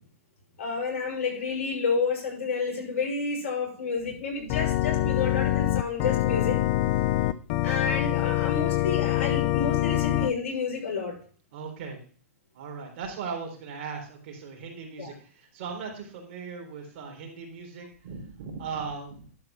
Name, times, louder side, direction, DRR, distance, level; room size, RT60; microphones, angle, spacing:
voice 1, 0.6-6.6 7.6-11.1 15.0-15.1, left 4 dB, 70° left, -2 dB, 5.9 m, -30 dB
Organ, 4.5-10.3, left 15 dB, 45° left, 0.6 m, -25 dB
voice 2, 11.5-12.0 12.5-19.3, right 5 dB, 55° right, 2 dB, 3.6 m, -38 dB
12.0 x 4.5 x 5.9 m, 0.43 s
hypercardioid pair, 130°, 8 cm